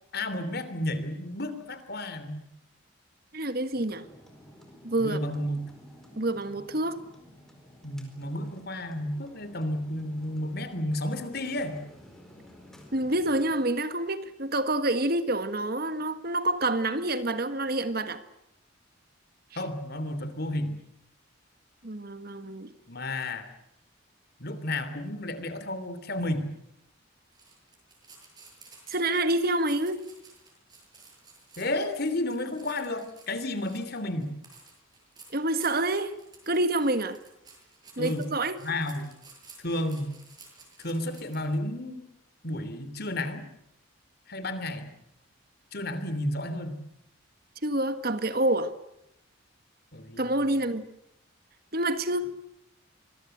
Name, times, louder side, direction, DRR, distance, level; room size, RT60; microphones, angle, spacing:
voice 1, 0.1-2.5 5.0-5.6 7.8-11.8 19.5-20.7 22.9-23.5 24.4-26.4 31.6-34.3 38.0-38.3 38.6-39.1 39.6-40.2 40.8-42.0 42.4-43.4 44.3-44.9 45.7-46.8 49.9-50.5, left 1 dB, 50° left, 3.2 m, -32 dB
voice 2, 3.3-4.1 4.8-5.2 6.2-7.0 12.9-18.2 21.8-22.7 28.9-30.0 35.3-36.1 36.5-37.2 38.0-38.6 47.6-48.7 50.2-50.9 51.7-52.3, right 1 dB, 45° right, 1.5 m, -27 dB
sound 1, 3.7-13.5, equal, ahead, 4.5 m, -53 dB
sound 2, 27.3-41.5, right 4 dB, 20° right, 7.9 m, -53 dB
26.0 x 22.0 x 8.0 m
head